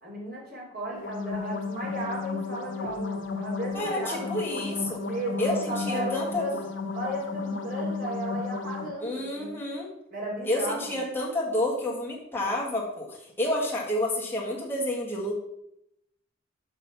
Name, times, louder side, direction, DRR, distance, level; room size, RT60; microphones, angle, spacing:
voice 1, 0.0-6.6 6.9-9.6 10.1-11.0, right 1 dB, 45° right, -4 dB, 3.0 m, -35 dB
sound 1, 0.9-8.9, left 4 dB, 60° left, 0.9 m, -33 dB
voice 2, 3.7-5.0 5.4-6.4 9.0-9.9 10.4-15.3, left 1 dB, 10° left, -3 dB, 1.6 m, -29 dB
6.3 x 5.4 x 5.5 m, 0.79 s
head